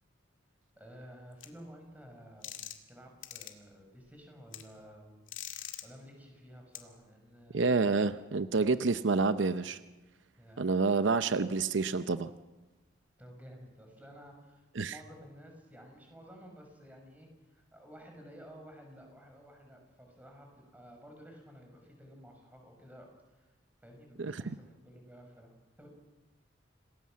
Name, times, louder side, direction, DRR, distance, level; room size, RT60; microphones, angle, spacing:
voice 1, 0.8-2.6 2.9-5.2 5.8-7.6 10.4-10.6 13.2-23.5 23.8-25.9, equal, 10° right, 2 dB, 5.4 m, -53 dB
sound 1, 1.4-1.5 2.4-2.9 3.2-3.5 4.5-4.6 5.3-5.8 6.8-6.9, left 11 dB, 90° left, 2.3 m, -42 dB
voice 2, 7.5-9.8 10.6-12.3 14.8-14.9 24.2-24.4, right 4 dB, 75° right, 12 dB, 0.7 m, -28 dB
27.0 x 18.5 x 7.4 m, 1.1 s
head